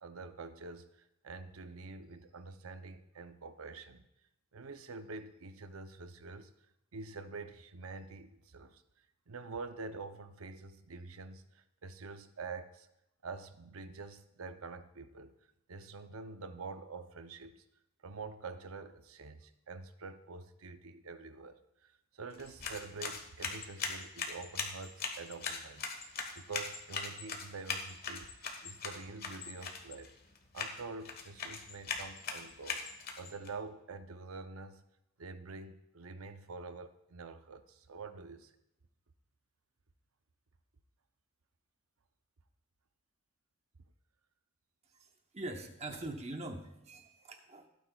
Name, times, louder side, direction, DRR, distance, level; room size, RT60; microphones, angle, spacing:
voice 1, 0.0-0.9 1.2-4.0 4.5-6.5 6.9-8.8 9.3-12.9 13.2-15.3 15.7-17.6 18.0-30.1 30.5-32.8 33.2-34.8 35.2-38.5, right 4 dB, 85° right, 10 dB, 0.7 m, -46 dB
sound 1, 22.3-33.5, left 5 dB, 45° left, 1.4 m, -41 dB
voice 2, 45.0-47.7, right 2 dB, 30° right, 5 dB, 0.9 m, -43 dB
16.5 x 9.0 x 2.4 m, 0.85 s
head